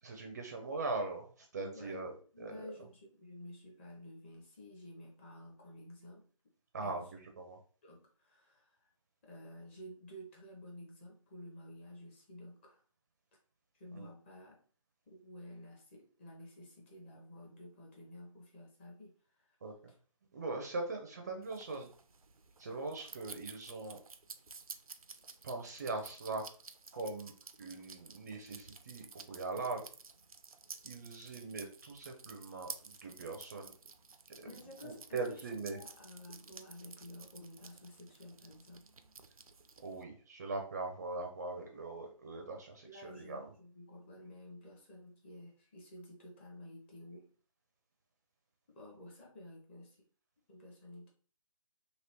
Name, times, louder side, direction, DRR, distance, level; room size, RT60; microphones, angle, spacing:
voice 1, 0.0-2.7 6.7-7.6 13.9-14.1 19.6-19.7 20.3-21.9 22.6-24.0 25.4-26.5 26.9-27.3 27.6-29.8 30.8-33.7 34.4-35.8 39.8-43.5, right 3 dB, 30° right, 3 dB, 0.5 m, -41 dB
voice 2, 2.3-6.3 6.8-7.0 7.8-8.9 9.2-12.8 13.7-14.6 15.1-19.6 34.4-38.9 42.8-47.3 48.7-50.1 50.5-51.1, left 1 dB, 20° left, -1 dB, 0.7 m, -52 dB
sound 1, 21.4-40.0, right 4 dB, 90° right, 0.4 m, -53 dB
2.9 x 2.9 x 2.9 m, 0.41 s
figure-of-eight pair, 145°, 18 cm